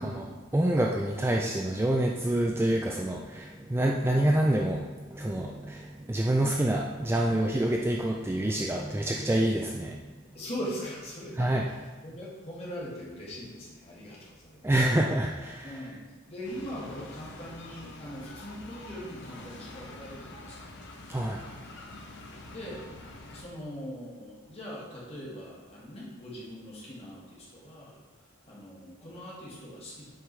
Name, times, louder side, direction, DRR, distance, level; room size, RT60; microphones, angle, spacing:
voice 1, 0.0-0.4 1.2-1.3 4.0-4.3 10.3-11.8 12.0-14.8 15.6-16.0 16.3-20.8 22.5-22.8 23.3-28.0 28.5-30.1, equal, 30° left, -6 dB, 1.9 m, -41 dB
voice 2, 0.5-10.1 11.4-11.7 14.6-15.8 21.1-21.4, right 1 dB, 10° right, 0 dB, 0.3 m, -27 dB
sound 1, 16.4-23.4, left 2 dB, 55° left, 0.9 m, -46 dB
7.9 x 5.2 x 3.2 m, 1.3 s
head